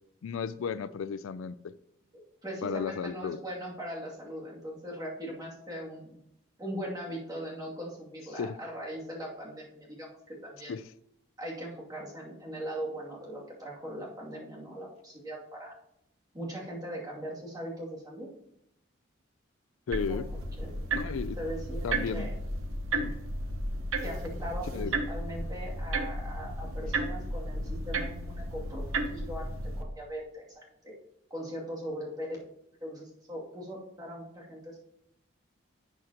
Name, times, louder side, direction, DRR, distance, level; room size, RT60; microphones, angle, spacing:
voice 1, 0.2-1.8 2.6-3.4 8.4-8.6 10.7-10.8 19.9-20.3 20.9-21.4 21.8-22.3 22.9-23.2 24.7-24.9, left 6 dB, 80° left, 14 dB, 0.4 m, -34 dB
voice 2, 2.1-6.2 6.6-10.7 11.4-15.7 16.3-18.3 20.1-20.2 20.6-20.7 21.4-22.3 24.0-29.5 29.8-30.5 30.8-30.9 31.3-32.3 32.8-34.8, equal, 20° right, -5 dB, 2.5 m, -40 dB
sound 1, 19.9-29.8, right 2 dB, 85° right, 1.1 m, -33 dB
11.5 x 7.6 x 2.9 m, 0.80 s
head